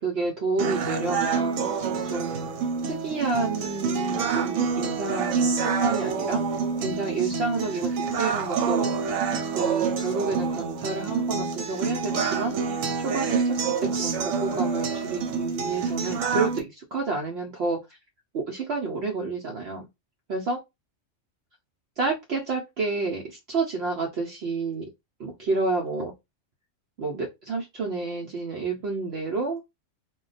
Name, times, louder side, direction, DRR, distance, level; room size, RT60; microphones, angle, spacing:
voice 1, 0.0-1.6 2.0-2.5 3.0-6.4 6.8-8.9 9.5-17.8 18.3-19.9 20.3-20.6 22.0-24.8 25.2-26.1 27.0-29.6, right 3 dB, 60° right, 0.8 m, -29 dB
sound 1, 0.6-16.6, right 5 dB, 90° right, 1.0 m, -27 dB
2.2 x 2.2 x 3.9 m
omnidirectional pair, 1.3 m